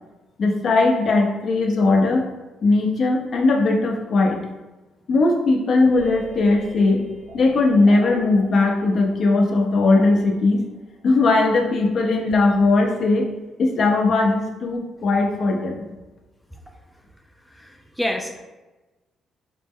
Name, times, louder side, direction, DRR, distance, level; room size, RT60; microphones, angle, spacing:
voice 1, 0.4-2.3 2.6-4.4 5.1-7.0 7.3-10.6 11.0-13.3 13.6-15.8, left 3 dB, 55° left, 1 dB, 0.7 m, -19 dB
sound 1, 5.9-11.7, right 2 dB, 90° right, 0.7 m, -40 dB
voice 2, 17.6-18.4, left 1 dB, ahead, 1 dB, 0.4 m, -28 dB
4.1 x 2.0 x 3.6 m, 1.1 s
cardioid pair, 90°, 0 cm